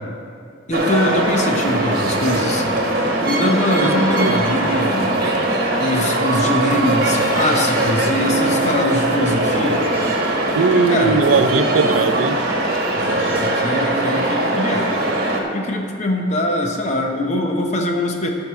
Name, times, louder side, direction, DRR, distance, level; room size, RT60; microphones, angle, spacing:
voice 1, 0.7-2.6 3.2-5.2 5.8-9.9 10.7-11.2 12.9-14.9 15.5-18.3, left 1 dB, 35° left, 2 dB, 1.0 m, -22 dB
sound 1, 0.7-15.4, right 1 dB, 50° right, 1.4 m, -20 dB
sound 2, 0.8-13.5, right 1 dB, 15° right, 1.6 m, -33 dB
voice 2, 3.8-4.4 10.6-12.4, right 4 dB, 90° right, 10 dB, 0.5 m, -19 dB
12.5 x 4.8 x 7.0 m, 2.4 s
head